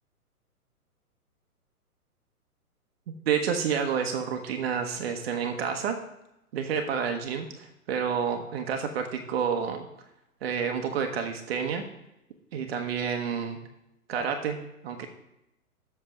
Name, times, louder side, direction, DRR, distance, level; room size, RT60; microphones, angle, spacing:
voice 1, 3.3-6.0 6.5-9.9 10.4-11.8 12.5-13.6 14.1-15.1, right 7 dB, 40° right, 4 dB, 1.0 m, -29 dB
7.8 x 6.5 x 4.7 m, 0.84 s
figure-of-eight pair, 125°, 45 cm